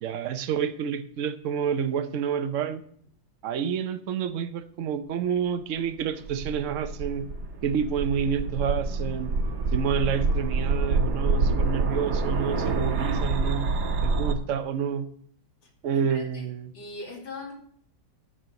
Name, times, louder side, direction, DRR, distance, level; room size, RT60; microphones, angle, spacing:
voice 1, 0.0-2.8 3.4-7.3 7.6-9.3 9.7-13.7 14.0-15.1 15.8-16.7, right 7 dB, 80° right, 10 dB, 0.6 m, -29 dB
sound 1, 6.0-14.3, right 3 dB, 60° right, 1.4 m, -27 dB
voice 2, 16.1-16.4 16.7-17.5, left 3 dB, 70° left, -2 dB, 3.2 m, -40 dB
9.1 x 6.2 x 6.8 m, 0.63 s
omnidirectional pair, 2.2 m